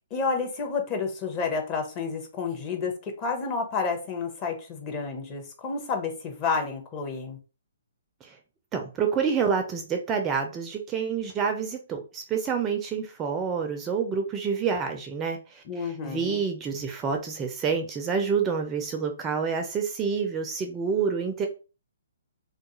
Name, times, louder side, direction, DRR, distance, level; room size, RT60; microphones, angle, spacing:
voice 1, 0.1-7.4 15.6-16.4, left 5 dB, 30° left, 3 dB, 0.7 m, -30 dB
voice 2, 8.7-21.5, right 6 dB, 20° right, 4 dB, 0.4 m, -28 dB
2.3 x 2.3 x 2.9 m, 0.33 s
figure-of-eight pair, 130°, 0 cm